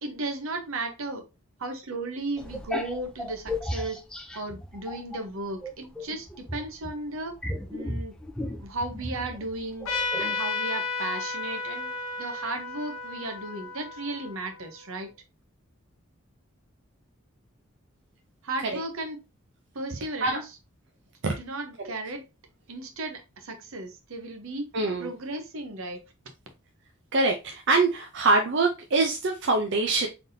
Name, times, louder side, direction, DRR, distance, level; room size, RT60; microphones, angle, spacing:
voice 1, 0.0-1.2 1.6-4.0 4.3-7.4 7.7-8.2 8.6-9.9 10.2-15.1 18.4-19.2 19.7-20.5 21.4-22.2 22.7-24.7 25.0-26.0, right 2 dB, 70° right, 5 dB, 0.9 m, -35 dB
sound 1, 2.4-5.2 5.6-10.4, left 1 dB, 5° left, 0.4 m, -35 dB
Trumpet, 9.9-14.9, left 4 dB, 75° left, 0.7 m, -33 dB
voice 2, 24.7-25.1 27.1-30.1, right 3 dB, 55° right, 2 dB, 0.5 m, -24 dB
4.0 x 3.5 x 2.6 m, 0.27 s
head